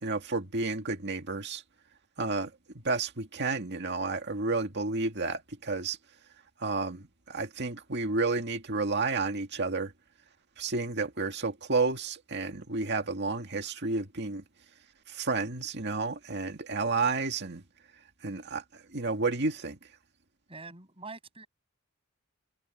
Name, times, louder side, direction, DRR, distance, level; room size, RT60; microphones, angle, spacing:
voice 1, 0.0-1.6 2.2-2.5 2.8-6.0 6.6-9.9 10.6-14.4 15.1-17.6 18.2-18.6 18.9-19.8, right 3 dB, 55° right, 2.1 m, -31 dB
voice 2, 20.5-21.5, right 3 dB, 25° right, 7.5 m, -44 dB
head